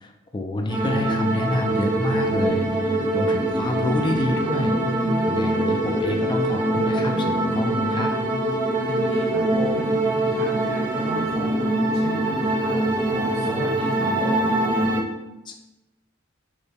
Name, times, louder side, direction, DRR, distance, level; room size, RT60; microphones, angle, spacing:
voice 1, 0.0-5.0 5.3-8.1 15.5-15.6, left 2 dB, 25° left, 3 dB, 0.4 m, -28 dB
sound 1, 0.7-15.0, right 1 dB, 25° right, 0.6 m, -23 dB
voice 2, 8.8-9.9 10.3-14.7, right 1 dB, 50° right, -4 dB, 1.3 m, -34 dB
6.3 x 2.2 x 3.4 m, 0.99 s
head